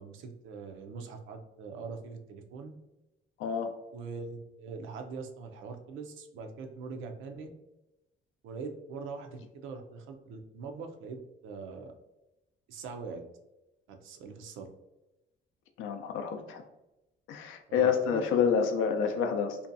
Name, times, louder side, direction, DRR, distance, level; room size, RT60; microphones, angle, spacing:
voice 1, 0.0-2.7 3.9-7.5 8.4-11.2 11.4-11.9 12.7-13.2 13.9-14.7 17.7-18.2, right 4 dB, 90° right, 5 dB, 0.5 m, -42 dB
voice 2, 3.4-3.7 15.8-16.6 17.3-19.6, left 6 dB, 90° left, 6 dB, 0.4 m, -28 dB
2.7 x 2.2 x 2.5 m, 0.95 s
cardioid pair, 90°, 20 cm